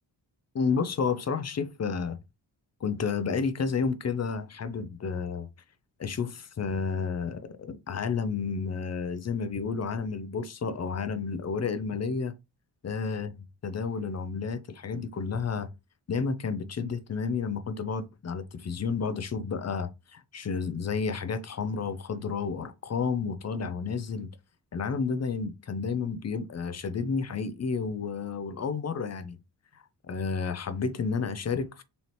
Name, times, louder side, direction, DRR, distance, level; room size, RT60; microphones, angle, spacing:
voice 1, 0.5-2.2 2.8-5.5 6.0-12.3 12.8-13.4 13.6-15.7 16.1-24.3 24.7-29.4 30.1-31.8, left 5 dB, 40° left, 0.4 m, -31 dB
4.1 x 2.8 x 3.1 m
wide cardioid pair, 165°, 43 cm